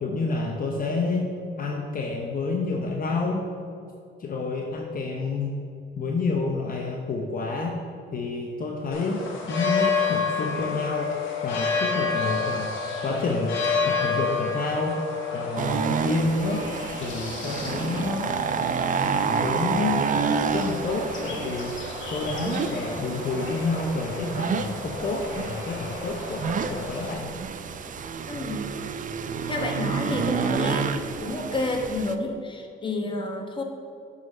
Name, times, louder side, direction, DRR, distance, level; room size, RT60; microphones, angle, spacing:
voice 1, 0.0-1.3 1.6-3.4 4.2-5.6 6.0-7.8 8.1-11.2 11.4-12.7 13.0-13.5 13.8-15.0 15.3-16.7 17.0-18.3 19.4-20.1 20.5-21.8 22.1-27.3, left 3 dB, 45° left, 1 dB, 0.8 m, -29 dB
sound 1, 8.9-27.1, left 4 dB, 80° left, 1.2 m, -31 dB
sound 2, 15.6-32.1, right 6 dB, 40° right, 0.5 m, -29 dB
voice 2, 28.3-28.6 29.5-30.9 31.2-33.6, left 2 dB, 25° left, 2 dB, 1.1 m, -29 dB
7.5 x 4.1 x 5.4 m, 2.5 s
cardioid pair, 90°, 20 cm